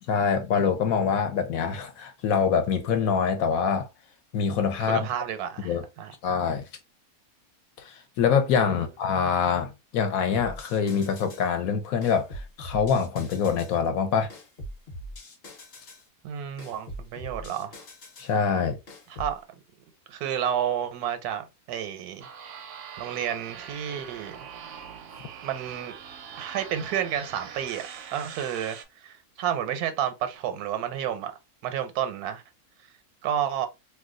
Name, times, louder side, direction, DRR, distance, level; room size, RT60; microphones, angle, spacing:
voice 1, 0.1-3.9 4.3-5.1 5.6-5.8 6.2-6.6 7.8-14.3 18.2-18.8, left 6 dB, 70° left, 1.1 m, -25 dB
voice 2, 4.9-6.1 16.2-17.7 19.1-19.4 20.1-22.3 23.0-24.5 25.4-26.0 26.4-31.3 31.6-32.4 33.2-33.7, right 9 dB, 85° right, 1.1 m, -30 dB
sound 1, 10.3-11.5 12.0-13.8 14.3-16.1 16.6-18.4 18.9-19.4, equal, 50° left, 1.0 m, -42 dB
sound 2, 22.2-28.8, right 7 dB, 65° right, 0.8 m, -42 dB
2.7 x 2.2 x 3.6 m
omnidirectional pair, 1.6 m